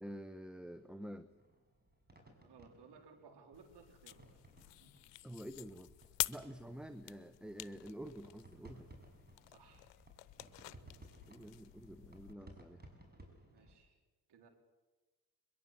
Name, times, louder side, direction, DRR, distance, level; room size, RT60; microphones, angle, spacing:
voice 1, 0.0-1.3 5.2-5.9 6.3-8.9 11.3-12.8, equal, ahead, 11 dB, 1.2 m, -48 dB
sound 1, 0.7-13.8, right 1 dB, 20° right, 6.7 m, -61 dB
voice 2, 2.4-4.2 4.7-4.9 9.5-9.9 13.5-14.0 14.3-14.5, right 5 dB, 65° right, 4 dB, 4.4 m, -60 dB
sound 2, 3.5-12.4, left 18 dB, 75° left, 0.8 m, -47 dB
22.0 x 22.0 x 7.7 m, 1.2 s
hypercardioid pair, 50°, 44 cm